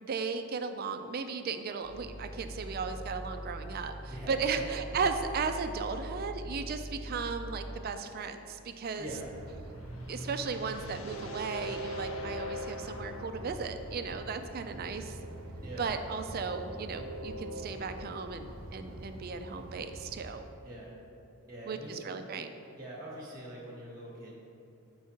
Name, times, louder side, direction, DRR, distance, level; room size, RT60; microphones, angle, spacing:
voice 1, 0.0-9.1 10.1-15.2 15.8-20.5 21.7-22.5, right 5 dB, 45° right, 8 dB, 0.4 m, -36 dB
sound 1, 1.8-7.8, right 1 dB, 40° left, 0.8 m, -42 dB
voice 2, 4.0-4.7 9.0-9.3 15.6-15.9 20.6-21.0 21.5-22.1 22.8-24.3, right 1 dB, 20° right, -4 dB, 1.0 m, -44 dB
Train, 9.1-20.3, right 1 dB, 70° right, 0.7 m, -42 dB
sound 2, 9.3-14.5, left 4 dB, 65° left, 0.5 m, -50 dB
7.1 x 4.6 x 4.4 m, 2.7 s
head